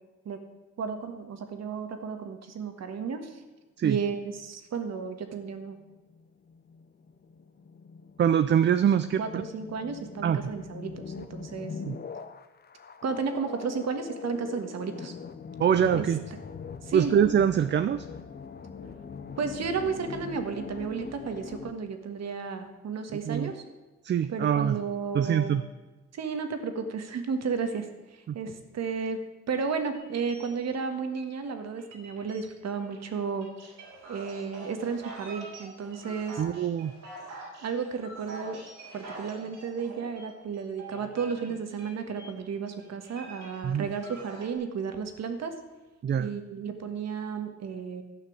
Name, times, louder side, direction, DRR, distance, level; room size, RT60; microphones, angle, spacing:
voice 1, 0.8-3.4 3.8-5.8 9.2-11.7 13.0-15.1 15.9-16.1 16.8-17.1 19.4-23.6 24.3-25.5 26.1-29.2 29.5-33.5 34.1-36.4 37.6-38.6 38.9-45.5 46.2-48.0, right 5 dB, 60° right, 7 dB, 1.7 m, -33 dB
sound 1, 5.3-21.7, left 5 dB, 35° left, 0.8 m, -42 dB
voice 2, 8.2-9.4 10.2-10.5 11.8-12.0 15.6-16.2 16.9-18.1 23.3-23.5 24.0-24.8 25.1-25.6 36.4-36.9 43.6-43.9 46.0-46.3, right 8 dB, 40° right, 12 dB, 0.5 m, -24 dB
sound 2, 29.9-31.4 31.8-32.4 32.8-42.3 42.7-44.5, right 3 dB, 90° right, 4.0 m, -45 dB
12.5 x 5.9 x 8.5 m, 1.2 s
cardioid pair, 90°, 30 cm